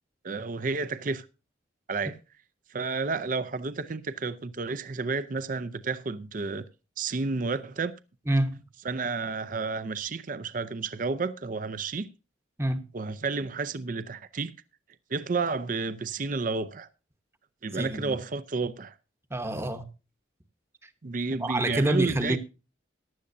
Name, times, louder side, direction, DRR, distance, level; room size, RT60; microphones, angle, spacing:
voice 1, 0.2-1.3 1.9-2.1 2.7-6.6 7.0-7.9 8.8-12.1 12.9-14.5 15.1-16.9 17.6-18.9 21.0-22.4, right 4 dB, 45° right, 0.5 m, -31 dB
voice 2, 8.3-8.7 12.6-12.8 17.7-18.2 19.3-19.9 20.8-20.9 21.4-22.4, right 1 dB, 15° right, 0.9 m, -27 dB
15.0 x 11.5 x 2.6 m
head